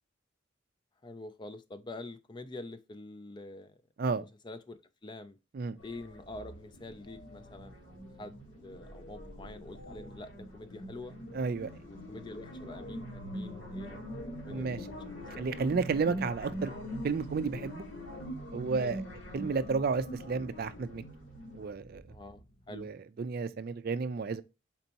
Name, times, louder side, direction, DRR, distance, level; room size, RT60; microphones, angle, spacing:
voice 1, 1.0-3.8 4.2-5.4 5.8-7.9 8.2-11.2 11.9-14.1 14.4-14.7 15.1-15.5 18.8-19.0 22.1-22.9, left 2 dB, 25° left, 0.4 m, -46 dB
sound 1, 5.8-21.7, equal, 80° left, 1.9 m, -43 dB
sound 2, 6.1-22.8, equal, 50° left, 1.0 m, -56 dB
voice 2, 11.3-11.7 14.5-14.8 15.4-16.7 17.0-17.8 18.5-19.0 19.3-21.0 21.5-22.0 22.7-24.4, right 4 dB, 50° right, 0.4 m, -32 dB
4.4 x 4.0 x 2.8 m
head